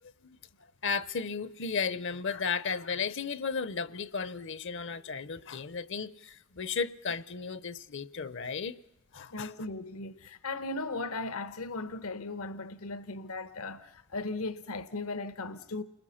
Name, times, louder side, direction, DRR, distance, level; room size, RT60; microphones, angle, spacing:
voice 1, 0.8-8.8 9.1-9.5, left 5 dB, 55° left, 0.8 m, -34 dB
voice 2, 9.3-15.8, left 3 dB, 75° left, 1.0 m, -37 dB
29.5 x 21.0 x 5.7 m
head